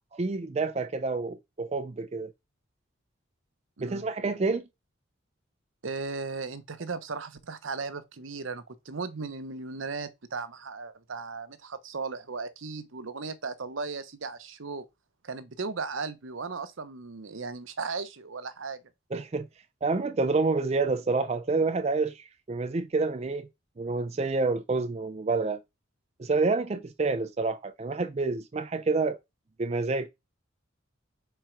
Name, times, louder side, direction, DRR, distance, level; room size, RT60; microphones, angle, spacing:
voice 1, 0.2-2.3 3.8-4.6 19.1-19.5 19.8-23.5 23.8-25.6 26.2-29.2 29.6-30.1, right 3 dB, 30° right, 0.4 m, -28 dB
voice 2, 5.8-14.9 15.2-18.8, right 4 dB, 70° right, 0.8 m, -36 dB
5.0 x 4.5 x 4.5 m
head